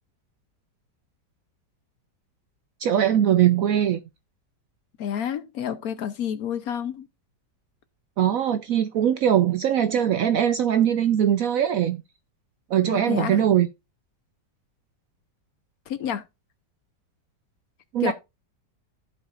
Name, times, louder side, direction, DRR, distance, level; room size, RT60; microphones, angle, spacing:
voice 1, 2.8-4.0 8.2-12.0 12.7-13.7 17.9-18.1, right 10 dB, 70° right, 0.8 m, -21 dB
voice 2, 5.0-7.1 12.9-13.4 15.9-16.2 18.0-18.1, left 9 dB, 65° left, 1.1 m, -29 dB
15.0 x 5.4 x 2.5 m
omnidirectional pair, 1.9 m